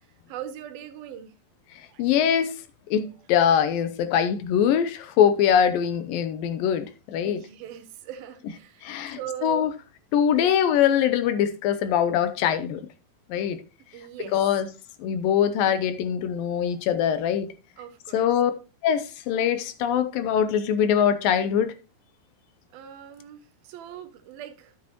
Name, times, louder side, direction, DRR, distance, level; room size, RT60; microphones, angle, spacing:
voice 1, 0.3-1.3 1.9-2.0 2.4-2.5 3.0-3.1 7.2-9.7 10.3-10.5 13.9-14.4 17.8-18.3 22.7-24.7, right 10 dB, 75° right, 2.8 m, -40 dB
voice 2, 2.0-2.5 2.9-7.4 8.8-9.7 10.1-12.8 13.3-13.6 14.3-14.7 15.0-17.5 18.1-18.5 18.8-21.7, left 9 dB, 80° left, 2.4 m, -23 dB
12.0 x 7.5 x 3.0 m
omnidirectional pair, 4.3 m